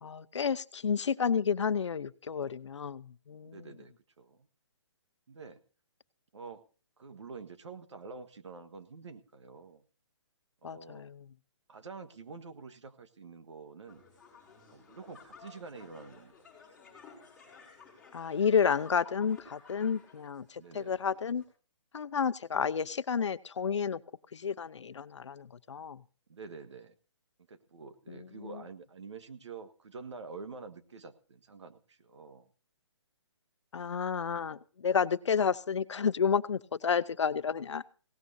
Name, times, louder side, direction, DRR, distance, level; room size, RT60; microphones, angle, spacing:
voice 1, 0.0-3.6 10.6-11.2 18.1-21.4 21.9-24.0 24.3-26.0 28.1-28.5 33.7-37.8, left 6 dB, 70° left, 13 dB, 0.8 m, -31 dB
voice 2, 3.4-4.5 5.3-5.6 6.3-6.6 7.0-9.8 10.6-11.0 11.7-14.0 14.7-16.3 20.6-21.0 26.3-27.0 27.5-32.5, right 4 dB, 70° right, 10 dB, 1.6 m, -47 dB
sound 1, 13.9-21.4, left 5 dB, ahead, 5.1 m, -55 dB
20.5 x 17.5 x 2.8 m, 0.38 s
hypercardioid pair, 175°, 15 cm